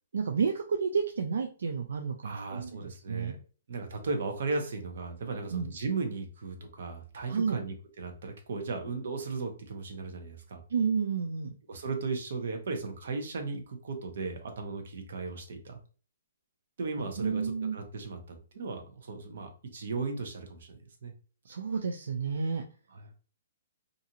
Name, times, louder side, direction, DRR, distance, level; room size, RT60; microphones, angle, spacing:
voice 1, 0.1-3.4 5.5-5.7 7.3-7.6 10.7-11.5 17.2-17.8 21.5-22.6, right 5 dB, 80° right, 3 dB, 0.3 m, -30 dB
voice 2, 2.2-3.4 3.7-10.6 11.7-15.8 16.8-21.1 22.9-23.1, right 4 dB, 60° right, 4 dB, 0.7 m, -36 dB
2.6 x 2.4 x 2.8 m, 0.38 s
hypercardioid pair, 175°, 0 cm